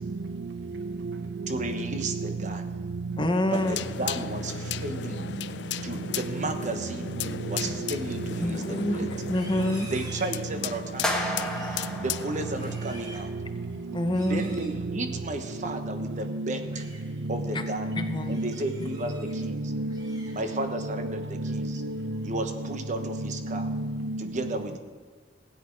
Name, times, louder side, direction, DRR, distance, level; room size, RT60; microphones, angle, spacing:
voice 1, 1.5-2.7 3.5-5.2 5.8-7.2 7.5-9.1 9.9-11.3 12.0-13.3 14.3-16.8 17.3-17.9 18.3-19.6 20.3-21.8 22.2-23.7 24.2-24.8, right 2 dB, 45° right, 1.2 m, -33 dB
voice 2, 3.2-3.8 8.4-9.9 13.9-14.4 17.5-17.7 17.9-18.4, left 1 dB, 25° left, 0.9 m, -27 dB
sound 1, 3.5-12.7, left 9 dB, 75° left, 0.4 m, -36 dB
Livestock farm animals working animals, 9.2-10.9 11.3-12.0 12.4-13.3 14.1-14.8 16.4-17.0 17.5-17.7 18.2-19.4 19.7-20.8 21.2-21.5 21.9-22.4, right 2 dB, 25° right, 2.2 m, -48 dB
sound 2, 11.0-13.3, left 1 dB, 5° left, 1.7 m, -32 dB
voice 3, 17.9-18.5 19.3-20.2 21.5-21.7 23.5-24.2, right 1 dB, 80° right, 0.7 m, -31 dB
16.0 x 10.0 x 4.7 m
head